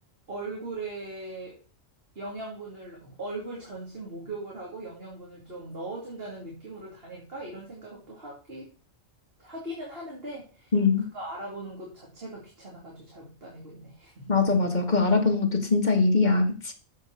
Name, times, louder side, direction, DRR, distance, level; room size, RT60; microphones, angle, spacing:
voice 1, 0.3-1.6 2.1-8.7 9.4-10.7 11.1-14.3, right 2 dB, 50° right, 2.6 m, -39 dB
voice 2, 10.7-11.0 14.3-16.7, left 4 dB, 35° left, 1.6 m, -22 dB
7.3 x 6.3 x 6.4 m
omnidirectional pair, 1.3 m